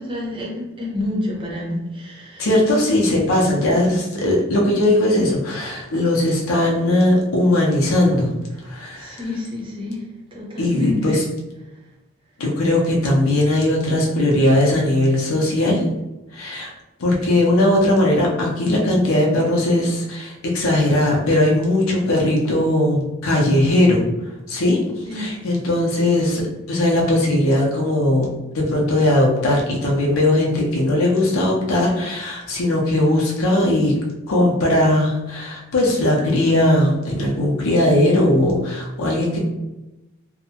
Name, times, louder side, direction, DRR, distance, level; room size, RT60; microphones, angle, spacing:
voice 1, 0.0-2.5 8.9-10.0 10.3-11.1 25.0-25.3, left 1 dB, 25° right, -4 dB, 0.7 m, -28 dB
voice 2, 2.4-8.3 8.6-9.2 10.6-11.2 12.4-15.8 16.3-16.7 17.0-24.0 24.5-24.8 25.1-34.0 34.3-39.4, left 1 dB, 75° left, -2 dB, 0.5 m, -19 dB
2.6 x 2.1 x 2.7 m, 1.0 s
head